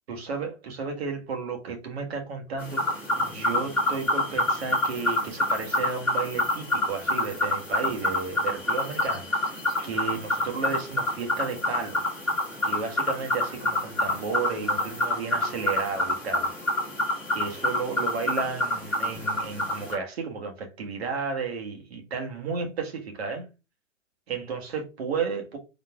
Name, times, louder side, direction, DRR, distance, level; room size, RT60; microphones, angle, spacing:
voice 1, 0.1-9.6 9.8-12.0 12.6-16.5 17.3-23.4 24.3-25.6, right 5 dB, 50° right, 1.6 m, -33 dB
sound 1, 2.6-19.9, left 1 dB, 5° left, 1.5 m, -27 dB
4.1 x 3.2 x 3.5 m
figure-of-eight pair, 125°, 39 cm